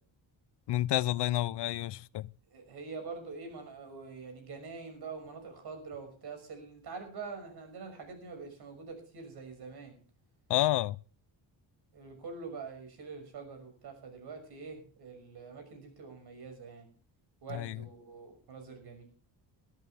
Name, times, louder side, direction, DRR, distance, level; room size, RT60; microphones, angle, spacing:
voice 1, 0.7-2.3 10.5-11.0 17.5-17.8, left 15 dB, 65° left, 0.6 m, -30 dB
voice 2, 2.5-9.9 11.9-16.9 17.4-19.0, right 4 dB, 60° right, 6.0 m, -45 dB
20.0 x 13.5 x 3.5 m
cardioid pair, 175°, 45 cm